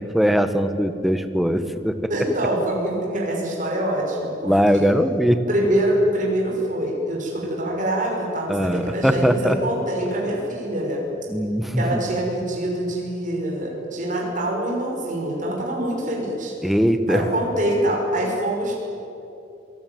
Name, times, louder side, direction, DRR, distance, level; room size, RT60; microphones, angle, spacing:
voice 1, 0.0-2.1 4.4-5.4 8.5-9.6 11.3-12.0 16.6-17.2, equal, ahead, 9 dB, 1.3 m, -20 dB
voice 2, 2.1-4.9 5.5-11.0 11.7-16.5 17.1-18.7, right 1 dB, 40° right, -2 dB, 5.6 m, -25 dB
26.5 x 19.5 x 9.4 m, 2.8 s
head